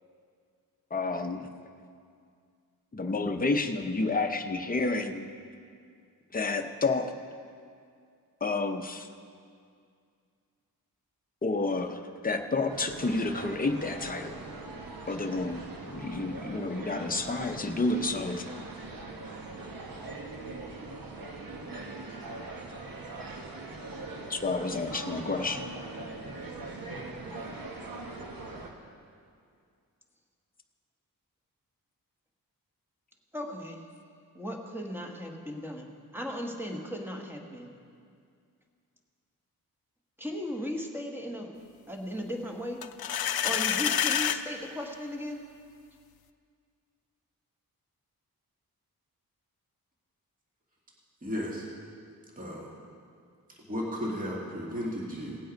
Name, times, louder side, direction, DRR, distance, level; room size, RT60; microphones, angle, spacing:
voice 1, 0.9-1.5 2.9-5.3 6.3-7.1 8.4-9.1 11.4-14.4 15.1-18.5 24.3-25.7, left 3 dB, 25° left, 5 dB, 0.7 m, -30 dB
sound 1, 12.7-28.7, right 2 dB, 70° right, 1.4 m, -41 dB
voice 2, 33.3-33.8 34.3-37.7 40.2-41.5 41.9-42.8 43.4-45.4, equal, 5° right, 0 dB, 1.4 m, -36 dB
sound 2, 42.8-44.4, left 9 dB, 90° left, 0.6 m, -27 dB
voice 3, 51.2-51.6 52.4-52.7 53.7-55.4, equal, 25° right, -4 dB, 1.8 m, -34 dB
18.0 x 7.7 x 5.2 m, 2.3 s
wide cardioid pair, 120°, 36 cm